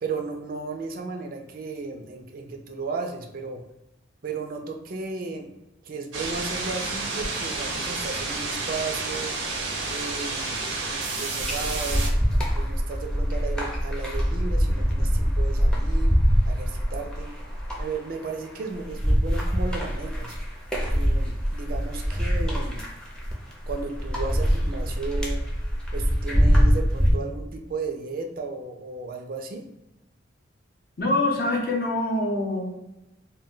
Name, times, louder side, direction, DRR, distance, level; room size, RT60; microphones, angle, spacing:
voice 1, 0.0-3.6 4.2-5.5 5.8-9.3 9.9-12.1 12.5-16.1 16.5-17.3 17.8-20.3 20.9-22.8 23.7-25.4 25.9-29.6, right 4 dB, 50° right, 3 dB, 0.4 m, -34 dB
sound 1, 6.1-12.1, right 3 dB, 85° right, 0.6 m, -30 dB
sound 2, 11.4-27.1, equal, 5° left, 0.5 m, -24 dB
voice 2, 31.0-32.8, left 2 dB, 50° left, 0 dB, 0.6 m, -25 dB
2.2 x 2.2 x 3.7 m, 0.97 s
head